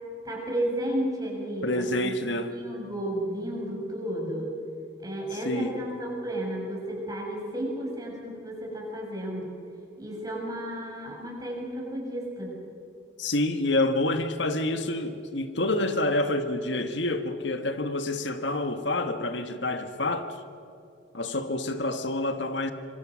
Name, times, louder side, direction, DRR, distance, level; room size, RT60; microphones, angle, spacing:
voice 1, 0.2-2.2 2.5-4.5 5.0-9.6 10.0-12.6, right 1 dB, 20° right, -1 dB, 6.8 m, -32 dB
voice 2, 1.6-2.5 5.4-5.7 13.2-20.3 21.1-22.7, left 2 dB, 75° left, 8 dB, 1.5 m, -28 dB
26.5 x 23.5 x 6.3 m, 2.7 s
head